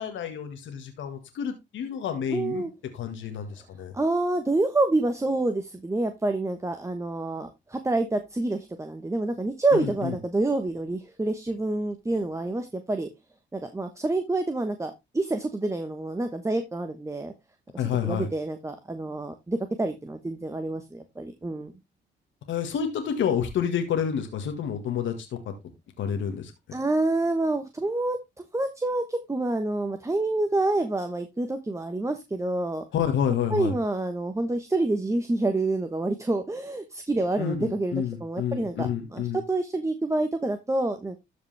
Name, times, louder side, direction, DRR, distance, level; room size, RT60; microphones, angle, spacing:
voice 1, 0.0-2.6 2.9-3.9 9.7-10.1 17.8-18.3 22.5-25.5 26.0-26.5 32.9-33.7 37.4-39.4, left 8 dB, 75° left, 6 dB, 1.8 m, -29 dB
voice 2, 2.3-2.7 3.9-13.1 13.5-17.3 18.0-21.7 26.7-28.2 28.5-32.8 33.5-41.2, right 2 dB, 15° right, 7 dB, 1.2 m, -27 dB
13.0 x 5.1 x 3.4 m, 0.21 s
cardioid pair, 90°, 20 cm